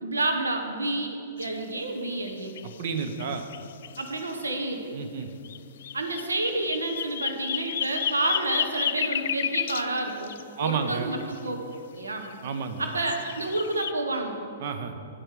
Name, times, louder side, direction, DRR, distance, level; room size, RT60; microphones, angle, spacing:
voice 1, 0.0-2.6 4.0-5.0 5.9-11.6 11.9-12.3 12.8-14.4, right 2 dB, 75° right, 4 dB, 1.2 m, -29 dB
sound 1, 1.4-1.5 2.0-4.3 5.4-11.4 12.3-13.9, left 9 dB, 55° left, 0.3 m, -33 dB
voice 2, 2.8-3.4 4.9-5.3 10.6-11.1 12.4-12.9 14.6-14.9, right 6 dB, 50° right, 7 dB, 0.8 m, -30 dB
9.1 x 8.9 x 5.0 m, 2.6 s
figure-of-eight pair, 110°, 0 cm